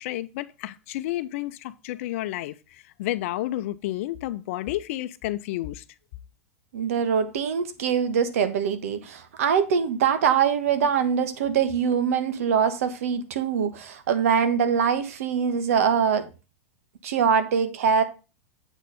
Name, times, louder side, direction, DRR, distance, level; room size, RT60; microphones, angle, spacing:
voice 1, 0.0-5.8, left 15 dB, 65° left, 0.6 m, -31 dB
voice 2, 6.7-16.3 17.0-18.0, right 7 dB, 75° right, 1.2 m, -23 dB
8.0 x 4.2 x 6.3 m
hypercardioid pair, 110°, 8 cm